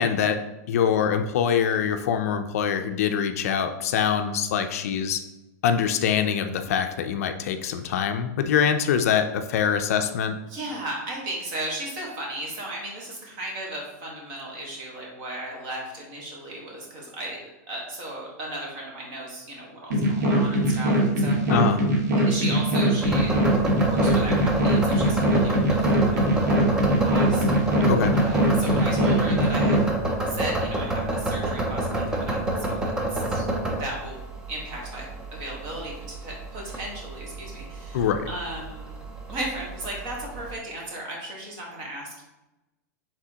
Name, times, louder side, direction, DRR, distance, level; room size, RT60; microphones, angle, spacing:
voice 1, 0.0-5.2 5.6-10.4 21.5-21.8 27.9-28.2 37.9-38.3, left 7 dB, 60° left, 8 dB, 0.4 m, -24 dB
voice 2, 10.5-17.4 17.7-21.5 22.2-23.3 23.8-25.8 26.1-26.6 27.0-27.8 28.1-29.8 30.2-34.2 34.5-39.0 39.3-42.2, right 1 dB, 35° right, -2 dB, 1.2 m, -36 dB
sound 1, 19.9-29.8, right 1 dB, 90° right, 1.3 m, -22 dB
sound 2, 23.0-40.5, right 1 dB, 10° right, 0.4 m, -29 dB
4.9 x 3.5 x 2.8 m, 0.99 s
supercardioid pair, 170°, 9 cm